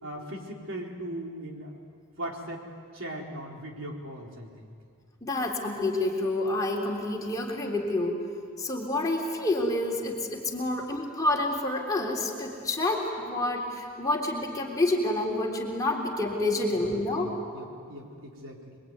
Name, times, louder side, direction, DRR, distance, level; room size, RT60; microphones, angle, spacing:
voice 1, 0.0-1.7 2.2-2.7 2.9-4.7 16.6-18.8, right 1 dB, 65° right, -1 dB, 4.2 m, -39 dB
voice 2, 5.2-8.3 8.6-17.4, left 2 dB, 15° left, -2 dB, 3.6 m, -28 dB
27.5 x 23.0 x 9.5 m, 2.2 s
head